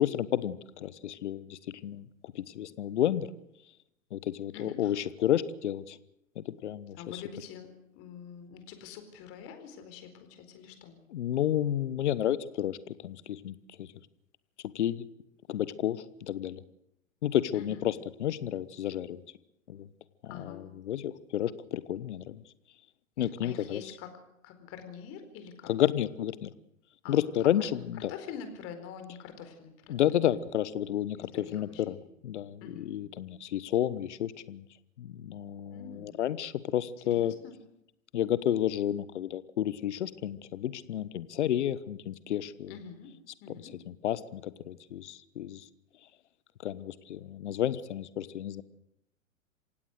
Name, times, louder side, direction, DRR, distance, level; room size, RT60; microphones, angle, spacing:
voice 1, 0.0-3.3 4.1-6.0 6.4-7.0 11.1-13.9 14.7-15.1 15.5-16.6 17.2-17.9 18.2-19.2 19.7-19.9 20.4-22.4 23.2-23.8 25.7-26.5 27.1-28.1 29.9-34.6 35.0-37.3 38.1-42.7 43.9-45.6 46.6-48.6, left 11 dB, 60° left, 17 dB, 1.3 m, -31 dB
voice 2, 4.5-5.0 7.0-7.7 7.9-11.0 17.5-17.9 20.2-20.6 23.4-24.1 24.4-25.7 27.0-27.5 27.9-30.3 31.2-32.0 32.6-32.9 35.7-36.2 37.1-37.6 42.7-43.1 43.4-43.7, left 7 dB, 35° left, 8 dB, 4.4 m, -45 dB
27.5 x 16.5 x 6.6 m, 0.81 s
figure-of-eight pair, 105°, 40 cm